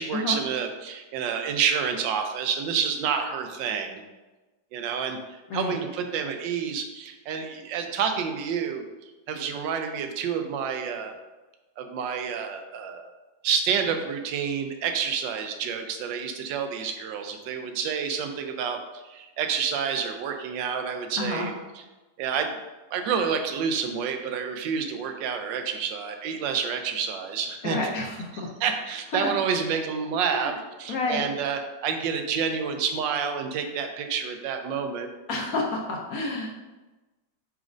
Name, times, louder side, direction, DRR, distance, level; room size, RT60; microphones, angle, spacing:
voice 1, 0.0-4.0 4.7-5.2 5.5-8.8 9.3-11.1 11.8-13.1 13.4-18.8 19.0-21.8 22.2-22.5 22.9-27.8 28.3-35.1, right 6 dB, 85° right, 5 dB, 1.3 m, -29 dB
voice 2, 21.2-21.5 27.6-28.5 29.1-29.3 30.3-30.5 30.9-31.2 35.3-36.5, left 2 dB, 65° left, -1 dB, 0.9 m, -29 dB
4.8 x 4.1 x 2.5 m, 1.1 s
omnidirectional pair, 1.9 m